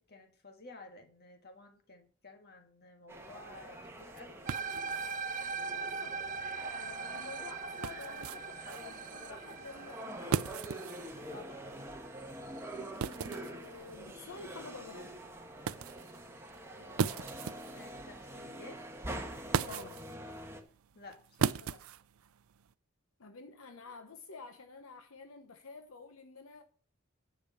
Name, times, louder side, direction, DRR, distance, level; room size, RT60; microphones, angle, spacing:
voice 1, 0.1-4.4 7.0-7.2 11.3-11.7 16.8-18.8 20.9-21.8, left 2 dB, 50° left, 1.8 m, -54 dB
sound 1, 3.1-20.6, right 1 dB, 10° right, 1.3 m, -46 dB
sound 2, 3.1-22.7, right 6 dB, 85° right, 0.4 m, -40 dB
sound 3, 4.5-12.9, right 5 dB, 40° right, 0.6 m, -41 dB
voice 2, 5.8-6.2 6.7-10.5 12.7-15.2 19.6-20.0 23.2-26.6, left 4 dB, 80° left, 0.9 m, -50 dB
10.0 x 5.1 x 7.0 m
head